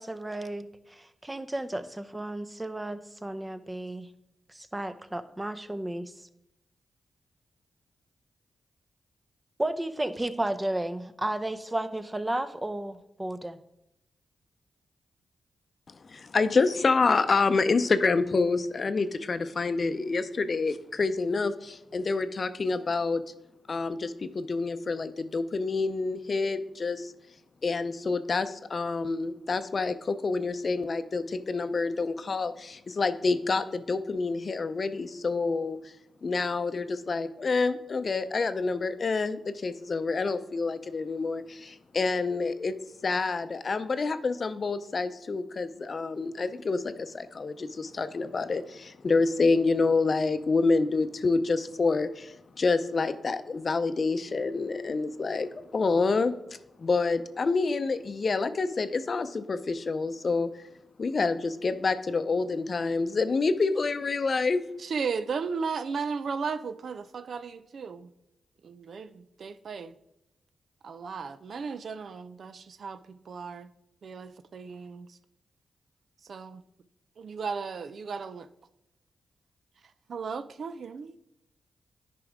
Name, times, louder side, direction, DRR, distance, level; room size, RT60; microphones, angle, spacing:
voice 1, 0.0-4.1 4.5-6.3 9.6-13.6, right 1 dB, 20° right, 0.7 m, -33 dB
voice 2, 16.0-23.2 23.7-27.1 27.6-35.8 36.2-42.7 43.0-56.3 56.8-60.5 61.0-64.6, left 4 dB, 55° left, 0.6 m, -27 dB
voice 3, 64.8-68.1 68.6-69.9 70.8-73.7 74.0-75.2 76.2-76.6 77.2-78.5 80.1-81.2, right 5 dB, 65° right, 0.4 m, -35 dB
10.5 x 5.1 x 3.6 m
supercardioid pair, 45°, 0 cm